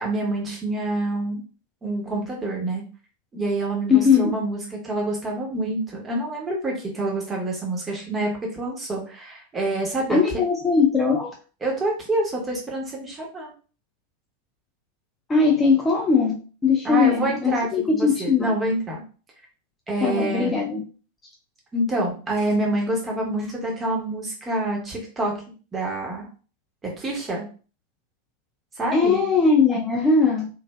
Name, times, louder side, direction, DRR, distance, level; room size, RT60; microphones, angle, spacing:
voice 1, 0.0-1.4 1.8-2.8 3.3-10.2 11.6-13.5 16.8-19.0 19.9-20.5 21.7-25.3 25.7-26.3 26.8-27.5 28.8-29.2, right 2 dB, 20° right, -1 dB, 1.0 m, -27 dB
voice 2, 3.9-4.4 10.1-11.3 15.3-18.5 20.0-20.8 28.9-30.5, left 5 dB, 15° left, 0 dB, 0.4 m, -20 dB
3.0 x 2.5 x 2.2 m, 0.38 s
figure-of-eight pair, 90°, 0 cm